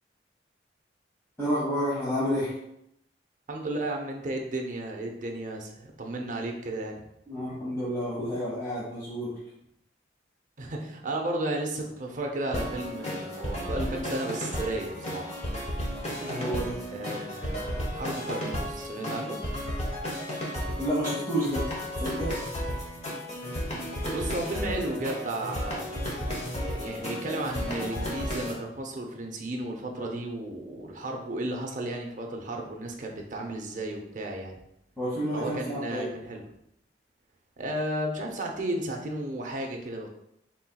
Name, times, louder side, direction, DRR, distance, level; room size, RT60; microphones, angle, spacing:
voice 1, 1.4-2.5 7.3-9.3 16.1-16.8 20.8-21.6 22.0-22.3 30.0-30.1 35.0-36.1, equal, 15° left, -11 dB, 1.3 m, -30 dB
voice 2, 3.5-7.0 10.6-15.4 16.9-19.5 24.1-25.9 26.6-34.6 35.3-36.4 37.6-40.1, right 1 dB, 45° right, 1 dB, 0.6 m, -33 dB
sound 1, 12.5-28.5, equal, 35° left, 1.1 m, -33 dB
4.3 x 4.1 x 2.3 m, 0.80 s
head